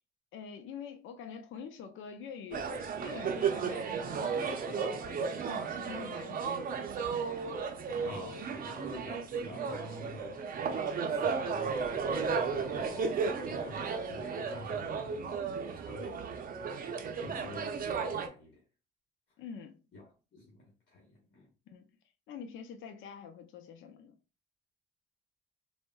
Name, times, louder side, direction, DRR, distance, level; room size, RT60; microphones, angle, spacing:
voice 1, 0.3-6.6 19.4-19.8 21.7-21.9 22.3-24.2, left 6 dB, 80° left, 0.5 m, -46 dB
sound 1, 2.5-18.3, right 5 dB, 45° right, 0.5 m, -34 dB
voice 2, 8.0-10.4 11.1-15.2 15.7-16.3 17.0-18.6 19.9-20.0 20.3-21.5, left 2 dB, 60° left, 1.1 m, -48 dB
3.5 x 2.1 x 2.2 m
cardioid pair, 90°, 20 cm